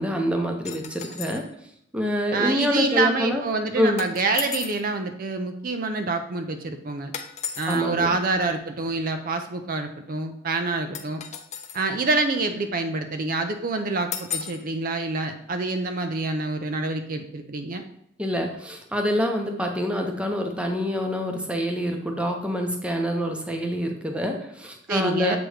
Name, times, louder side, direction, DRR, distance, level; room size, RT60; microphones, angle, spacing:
voice 1, 0.0-1.5 1.9-3.4 3.8-4.0 7.7-8.2 18.2-25.4, equal, 5° right, 3 dB, 0.8 m, -26 dB
sound 1, 0.6-1.5 4.0-4.8 7.1-7.8 10.9-11.9 14.1-14.6, left 7 dB, 35° left, 0.6 m, -34 dB
voice 2, 2.3-7.1 7.6-11.2 11.7-17.8 24.9-25.4, right 3 dB, 45° right, 6 dB, 0.5 m, -27 dB
7.7 x 3.0 x 4.9 m, 0.74 s
head